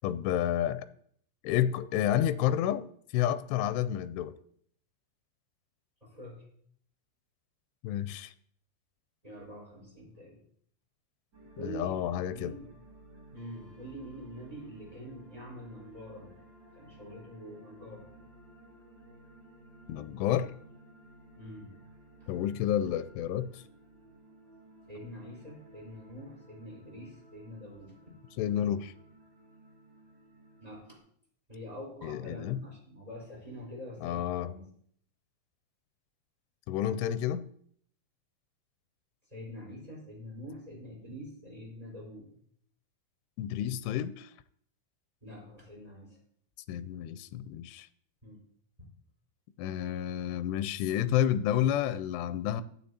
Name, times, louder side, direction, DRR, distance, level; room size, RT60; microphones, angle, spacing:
voice 1, 0.0-0.9 1.4-2.9 3.1-4.3 7.8-8.3 11.6-12.6 19.9-20.5 22.3-23.6 28.4-28.9 32.0-32.6 34.0-34.5 36.7-37.5 43.4-44.3 46.7-47.9 49.6-52.6, left 11 dB, 85° left, 13 dB, 2.6 m, -30 dB
voice 2, 6.0-6.5 9.2-10.4 11.6-12.0 12.3-12.7 13.3-16.4 16.7-18.0 21.3-21.7 24.9-27.9 30.6-31.0 31.5-34.7 39.3-42.4 45.2-46.2 48.2-48.4 48.8-48.9, equal, 10° right, -4 dB, 4.8 m, -45 dB
sound 1, 11.3-31.0, right 1 dB, 35° right, 2.0 m, -56 dB
13.5 x 9.2 x 2.8 m, 0.63 s
omnidirectional pair, 4.8 m